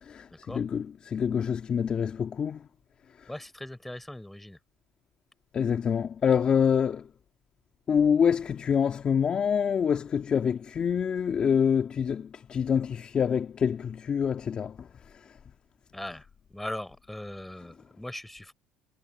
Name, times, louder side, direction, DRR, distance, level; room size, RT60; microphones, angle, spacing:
voice 1, 0.0-2.6 3.2-3.3 5.5-7.1 7.9-14.9, left 7 dB, 40° left, 2.5 m, -26 dB
voice 2, 3.3-4.6 15.9-16.3 16.5-18.5, left 1 dB, 5° left, 5.3 m, -39 dB
supercardioid pair, 80°, 2 cm